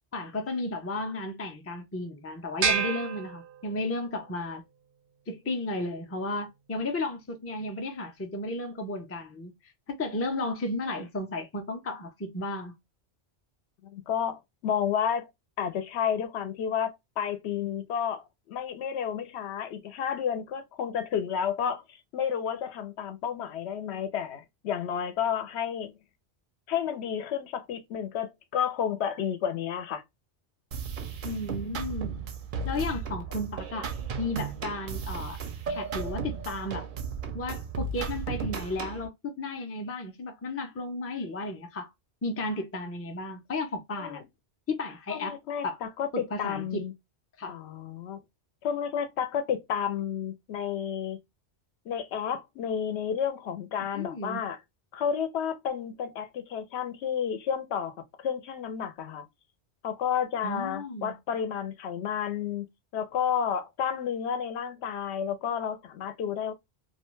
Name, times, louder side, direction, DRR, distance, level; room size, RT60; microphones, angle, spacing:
voice 1, 0.1-4.6 5.3-12.8 31.2-32.1 32.6-33.9 34.2-35.4 35.7-36.9 37.3-41.9 42.2-44.2 44.7-45.8 46.1-46.8 47.4-47.6 53.9-54.4 60.4-61.1, left 2 dB, 25° left, 0.3 m, -34 dB
sound 1, 2.6-4.1, right 6 dB, 90° right, 0.9 m, -29 dB
voice 2, 13.9-15.3 15.6-25.9 26.7-30.0 44.0-44.2 45.1-46.9 47.5-48.2 48.6-51.2 51.9-54.6 54.9-59.2 59.8-62.7 62.9-66.5, left 8 dB, 85° left, 0.8 m, -31 dB
sound 2, 30.7-39.1, right 5 dB, 60° right, 0.6 m, -35 dB
2.4 x 2.2 x 2.9 m
omnidirectional pair, 1.1 m